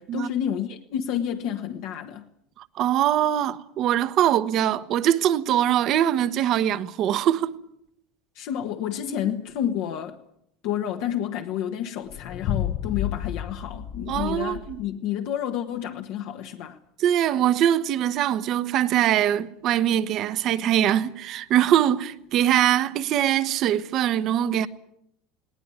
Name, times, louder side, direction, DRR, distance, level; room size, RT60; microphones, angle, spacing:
voice 1, 0.0-2.3 8.3-10.2 10.6-16.8, left 10 dB, 55° left, 1.4 m, -30 dB
voice 2, 2.7-7.6 14.1-14.8 17.0-24.7, right 11 dB, 35° right, 1.0 m, -22 dB
sound 1, 12.1-14.9, left 10 dB, 35° left, 0.8 m, -31 dB
20.0 x 19.0 x 9.6 m
cardioid pair, 170°, 0 cm